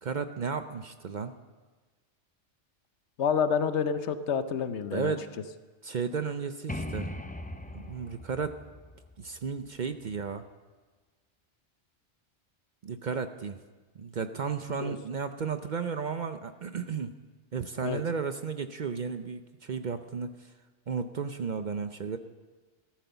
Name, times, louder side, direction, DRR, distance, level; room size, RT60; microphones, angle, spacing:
voice 1, 0.0-1.3 4.9-5.3 5.8-7.2 7.7-8.6 9.2-10.4 12.8-13.6 13.9-17.1 17.5-20.5 20.9-22.2, right 5 dB, 50° right, 9 dB, 0.6 m, -33 dB
voice 2, 3.2-5.1 14.8-14.9 17.8-18.0, left 7 dB, 70° left, 11 dB, 1.1 m, -28 dB
sound 1, 6.7-10.3, left 1 dB, 10° left, 0.4 m, -40 dB
14.0 x 13.5 x 6.8 m, 1.3 s
omnidirectional pair, 1.2 m